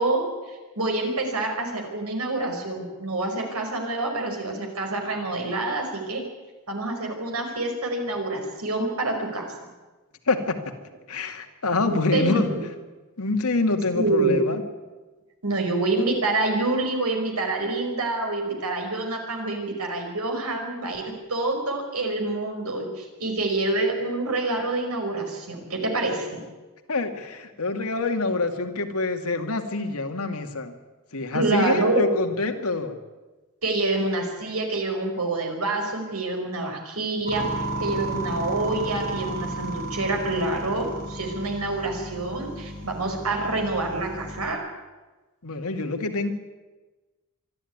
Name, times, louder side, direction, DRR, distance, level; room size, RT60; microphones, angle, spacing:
voice 1, 0.0-6.2 6.7-9.7 11.9-12.6 14.0-14.6 15.4-26.4 31.3-32.1 33.6-37.5 37.8-44.6, right 2 dB, 85° right, 3 dB, 5.3 m, -27 dB
voice 2, 10.3-10.7 11.1-12.5 13.2-14.6 26.9-30.7 31.1-33.0 45.4-46.3, left 3 dB, 85° left, 5 dB, 2.3 m, -26 dB
sound 1, 37.3-44.5, right 1 dB, 40° left, 6.9 m, -33 dB
24.5 x 13.0 x 9.6 m, 1.2 s
head